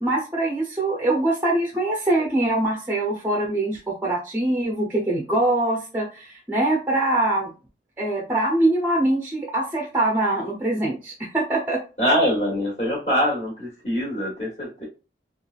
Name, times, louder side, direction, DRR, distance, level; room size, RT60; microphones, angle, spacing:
voice 1, 0.0-7.5 8.0-11.8, right 2 dB, 10° right, -1 dB, 0.5 m, -23 dB
voice 2, 12.0-14.9, equal, 40° left, -5 dB, 1.3 m, -23 dB
3.1 x 2.4 x 2.3 m, 0.32 s
head